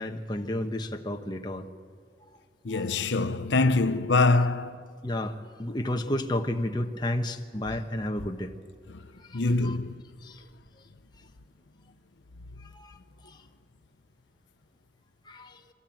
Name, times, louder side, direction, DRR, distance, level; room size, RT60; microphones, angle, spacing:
voice 1, 0.0-1.7 2.7-2.9 5.0-8.5 9.3-9.8 10.2-10.4 12.7-12.9 13.3-13.4 15.3-15.6, left 1 dB, 25° left, 1.1 m, -32 dB
voice 2, 2.6-4.9 8.9-9.0 9.3-10.0, left 3 dB, 90° left, 0.8 m, -24 dB
27.0 x 13.5 x 9.1 m
head